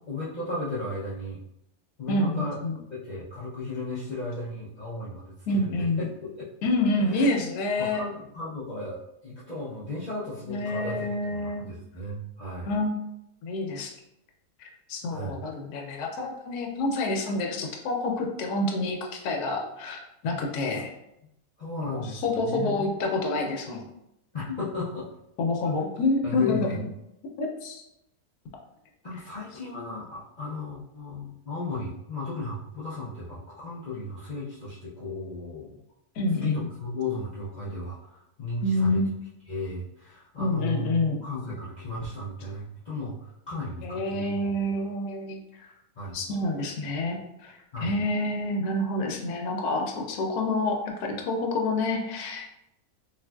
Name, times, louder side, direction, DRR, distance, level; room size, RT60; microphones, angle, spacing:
voice 1, 0.1-1.4 2.0-2.6 2.9-6.1 7.0-7.3 7.8-12.7 15.1-15.4 21.6-23.0 24.3-25.1 26.2-26.8 29.0-35.8 36.4-39.0 39.5-44.4 46.0-46.2 47.7-47.9, left 2 dB, 60° left, -10 dB, 0.4 m, -35 dB
voice 2, 2.1-2.8 5.5-6.1 6.6-8.0 10.5-11.6 12.7-13.0 13.4-13.9 14.6-20.9 21.9-23.8 25.4-26.9 27.4-27.8 36.2-36.7 38.6-39.1 40.4-41.2 43.8-45.7 46.1-52.5, left 2 dB, 85° left, 1 dB, 1.1 m, -28 dB
3.5 x 2.5 x 2.2 m, 0.84 s
omnidirectional pair, 1.6 m